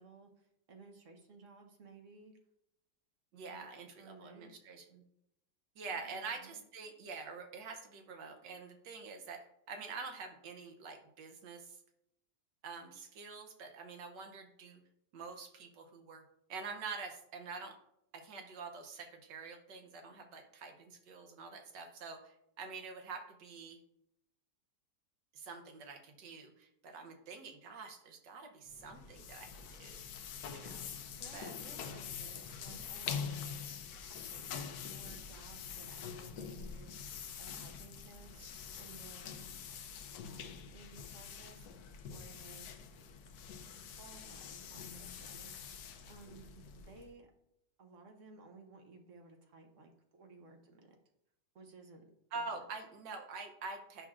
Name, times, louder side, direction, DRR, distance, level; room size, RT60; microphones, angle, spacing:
voice 1, 0.0-2.4 3.4-3.7 4.0-4.5 5.9-6.6 30.7-33.6 34.0-36.9 37.4-39.5 40.3-42.7 43.9-45.8 46.1-47.3 47.8-50.9 51.5-52.0 52.3-52.6, right 3 dB, 55° right, 4 dB, 1.0 m, -57 dB
voice 2, 3.3-5.0 5.8-11.8 12.6-14.8 15.1-16.2 16.5-17.8 18.1-23.8 25.3-30.0 30.5-30.9 31.3-31.5 52.3-54.1, right 4 dB, 80° right, 4 dB, 1.5 m, -46 dB
sound 1, 28.7-47.1, left 7 dB, 70° left, 1.1 m, -45 dB
8.4 x 5.9 x 2.4 m, 0.79 s
omnidirectional pair, 1.9 m